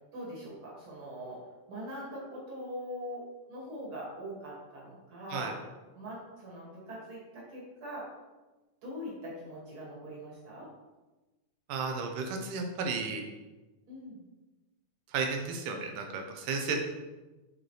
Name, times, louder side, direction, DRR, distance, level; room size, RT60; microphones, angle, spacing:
voice 1, 0.1-1.4 1.7-3.2 3.5-5.5 5.9-8.1 8.8-10.7 13.9-14.2, equal, 45° right, -5 dB, 2.5 m, -42 dB
voice 2, 11.7-13.2 15.1-16.8, right 4 dB, 75° right, 3 dB, 2.3 m, -33 dB
8.5 x 4.6 x 3.1 m, 1.2 s
omnidirectional pair, 3.8 m